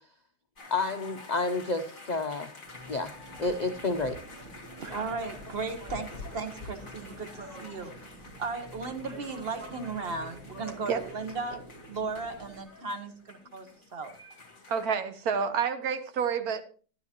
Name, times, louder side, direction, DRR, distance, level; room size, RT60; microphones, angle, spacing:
sound 1, 0.6-14.8, left 3 dB, 30° left, 2.0 m, -50 dB
voice 1, 0.7-2.5 2.9-3.1 3.4-4.1, left 3 dB, 65° left, 0.4 m, -30 dB
sound 2, 2.6-12.6, equal, 25° right, 2.2 m, -46 dB
voice 2, 4.8-7.9 8.4-11.6 11.9-14.1, right 4 dB, 40° right, 1.3 m, -36 dB
voice 3, 14.7-16.6, right 6 dB, 70° right, 1.4 m, -29 dB
12.5 x 11.5 x 2.9 m
omnidirectional pair, 1.7 m